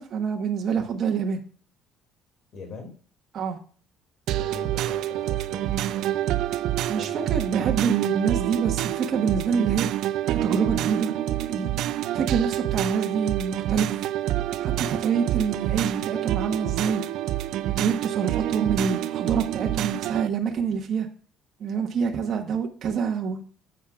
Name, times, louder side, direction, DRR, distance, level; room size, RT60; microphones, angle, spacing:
voice 1, 0.0-1.4 3.3-3.6 6.9-10.0 10.3-11.1 11.5-11.7 12.1-14.0 14.6-17.0 17.8-21.1 21.6-23.4, right 6 dB, 45° right, 2 dB, 1.2 m, -26 dB
voice 2, 2.5-3.0 4.3-6.4 6.8-7.8 18.6-18.7, left 3 dB, 50° left, 3 dB, 2.4 m, -43 dB
sound 1, 4.3-20.3, right 13 dB, 70° right, 0.4 m, -27 dB
10.0 x 7.2 x 2.4 m, 0.42 s
cardioid pair, 135°, 0 cm